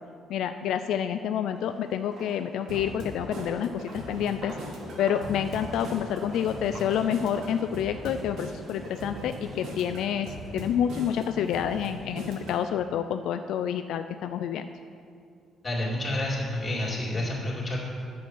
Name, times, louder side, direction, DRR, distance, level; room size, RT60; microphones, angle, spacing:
voice 1, 0.3-4.6 5.0-14.7, left 9 dB, 75° left, 8 dB, 0.3 m, -28 dB
Walk footsteps, 1.4-1.7 2.0-8.1, right 1 dB, 50° right, 2.8 m, -44 dB
sound 1, 2.7-12.6, right 1 dB, 75° right, 1.8 m, -40 dB
sound 2, 5.3-11.2, equal, 10° right, 1.8 m, -47 dB
voice 2, 15.6-17.8, left 1 dB, 20° left, -4 dB, 2.4 m, -29 dB
9.8 x 7.2 x 6.1 m, 2.4 s
cardioid pair, 160°, 0 cm